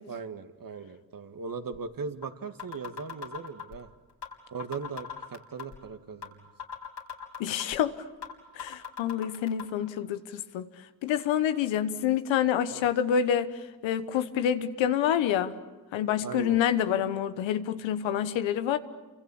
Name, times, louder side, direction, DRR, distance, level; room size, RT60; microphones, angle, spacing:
voice 1, 0.1-3.9 4.5-6.4 12.7-12.8 16.2-16.6, right 5 dB, 50° right, 8 dB, 1.9 m, -39 dB
sound 1, 1.7-1.8 2.2-2.3 2.6-3.8 4.2-4.3 4.6-5.8 6.2-6.3 6.6-7.8 8.2-8.3 8.6-9.6, left 7 dB, 60° left, 4.0 m, -38 dB
voice 2, 7.4-7.9 8.6-10.7 11.0-13.5 13.8-15.5 15.9-18.8, left 9 dB, 90° left, 10 dB, 1.2 m, -27 dB
28.5 x 25.0 x 7.2 m, 1.2 s
supercardioid pair, 55°, 44 cm